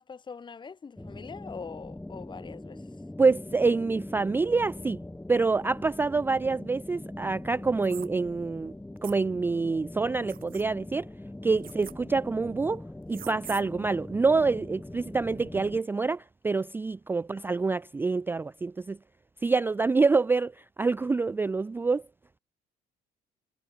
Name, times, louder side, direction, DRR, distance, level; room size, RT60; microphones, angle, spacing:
voice 1, 0.0-2.9, left 5 dB, 25° left, 1.2 m, -43 dB
sound 1, 1.0-15.8, left 1 dB, 5° left, 1.6 m, -42 dB
voice 2, 3.2-5.0 5.3-8.7 9.0-11.1 11.4-12.8 13.1-19.0 19.4-20.5 20.8-22.0, right 4 dB, 10° right, 0.3 m, -26 dB
sound 2, 7.8-8.1 9.0-9.2 10.3-10.6 11.6-11.9 13.1-13.6, right 11 dB, 60° right, 2.1 m, -43 dB
cardioid pair, 110°, 17 cm